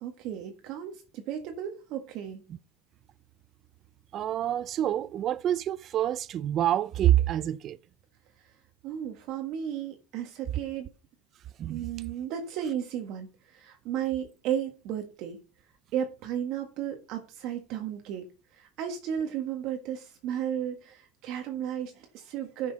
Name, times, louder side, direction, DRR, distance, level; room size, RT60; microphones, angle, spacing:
voice 1, 0.0-2.4 8.4-8.5 8.8-10.9 11.7-15.4 15.9-18.2 18.5-22.7, right 9 dB, 55° right, 1.5 m, -34 dB
voice 2, 4.1-7.8 11.6-11.8, right 12 dB, 35° right, 0.4 m, -27 dB
10.0 x 6.2 x 4.1 m
supercardioid pair, 145°, 0 cm